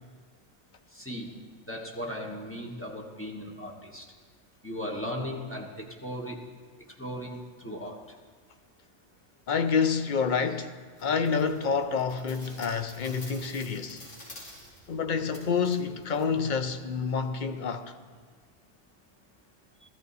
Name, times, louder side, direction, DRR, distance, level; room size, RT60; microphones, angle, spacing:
voice 1, 0.9-1.4 1.7-4.1 4.6-6.5 7.0-8.0, equal, 10° left, 1.3 m, -37 dB
voice 2, 9.5-10.7 11.0-14.0 14.9-17.9, left 5 dB, 50° left, 0.7 m, -28 dB
sound 1, 11.0-16.9, equal, 80° left, 3.2 m, -50 dB
14.0 x 14.0 x 4.1 m
omnidirectional pair, 1.3 m